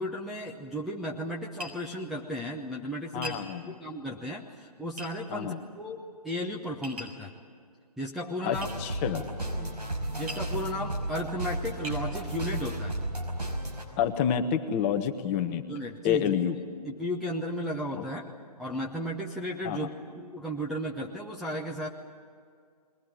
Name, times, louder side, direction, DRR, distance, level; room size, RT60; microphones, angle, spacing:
voice 1, 0.0-3.4 3.7-7.3 8.0-8.7 9.5-9.7 10.2-13.0 15.7-16.4 16.8-18.2 18.6-21.9, equal, ahead, -3 dB, 0.7 m, -34 dB
Tap, 1.6-1.8 3.2-3.4 5.0-5.1 6.8-7.2 8.6-8.8 10.3-10.5 11.2-11.3 11.8-12.0, equal, 65° right, 6.6 m, -39 dB
voice 2, 3.1-3.7 5.3-5.6 8.4-9.3 14.0-15.6 16.0-16.5 17.9-18.0 19.6-19.9, left 8 dB, 20° left, 7 dB, 1.0 m, -28 dB
sound 1, 8.5-13.8, right 1 dB, 85° right, 5.3 m, -33 dB
22.0 x 17.5 x 9.9 m, 2.2 s
figure-of-eight pair, 145°, 21 cm